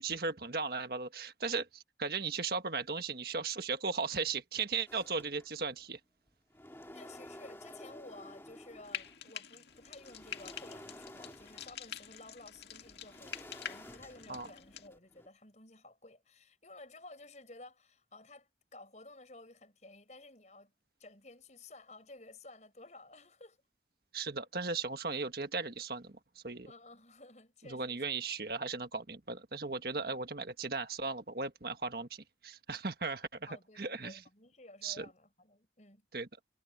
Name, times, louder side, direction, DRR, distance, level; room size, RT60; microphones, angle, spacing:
voice 1, 0.0-6.0 14.3-14.5 24.1-26.7 27.6-33.5 33.8-34.2 34.8-35.0 36.1-36.3, right 4 dB, 55° right, 1.6 m, -37 dB
sound 1, 4.9-5.8 6.3-9.2 9.7-15.3, left 1 dB, 15° left, 2.1 m, -53 dB
voice 2, 6.9-20.7 21.0-23.6 26.6-28.2 33.5-36.0, left 2 dB, 40° left, 6.0 m, -54 dB
Frying (food), 8.8-14.9, left 8 dB, 70° left, 2.0 m, -46 dB
head